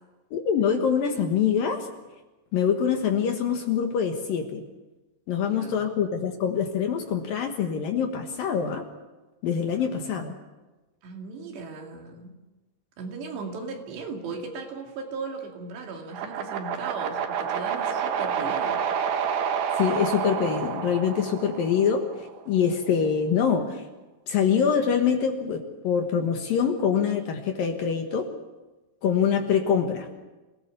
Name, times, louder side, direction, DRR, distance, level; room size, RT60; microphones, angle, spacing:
voice 1, 0.3-1.9 2.5-4.6 5.3-8.8 9.4-10.3 19.8-23.9 24.3-28.3 29.0-30.1, left 7 dB, 60° left, 4 dB, 2.8 m, -25 dB
voice 2, 5.3-5.9 11.0-12.3 13.0-18.8, right 4 dB, 70° right, 2 dB, 4.6 m, -37 dB
sound 1, 16.1-22.2, right 7 dB, 90° right, 4.0 m, -29 dB
26.5 x 18.0 x 7.0 m, 1.1 s
omnidirectional pair, 5.2 m